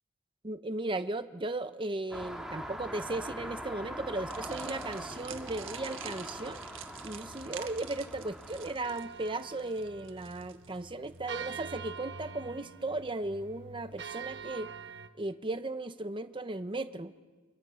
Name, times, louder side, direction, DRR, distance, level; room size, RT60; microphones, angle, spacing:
voice 1, 0.4-6.6 7.0-14.7 15.2-17.1, right 2 dB, 25° right, 10 dB, 0.9 m, -36 dB
sound 1, 2.1-8.8, equal, 5° right, 2.0 m, -42 dB
sound 2, 4.3-11.5, right 9 dB, 85° right, 1.5 m, -48 dB
sound 3, 8.8-15.1, right 6 dB, 60° right, 1.3 m, -45 dB
29.0 x 25.0 x 5.7 m, 1.3 s
head